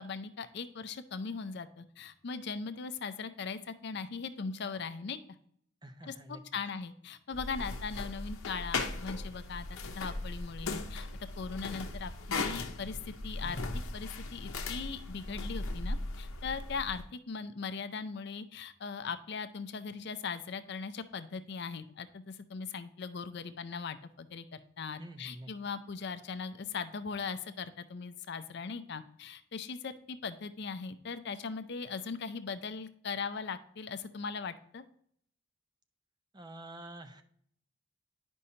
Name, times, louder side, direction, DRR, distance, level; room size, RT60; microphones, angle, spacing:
voice 1, 0.0-5.2 6.0-11.1 11.4-13.6 13.9-34.8, left 5 dB, 55° left, 11 dB, 0.5 m, -39 dB
voice 2, 5.8-6.4 25.0-25.5 36.3-37.2, right 1 dB, 20° right, 8 dB, 0.5 m, -47 dB
sound 1, 7.3-17.0, left 3 dB, 85° left, 0.8 m, -38 dB
9.9 x 5.3 x 2.8 m, 0.66 s
head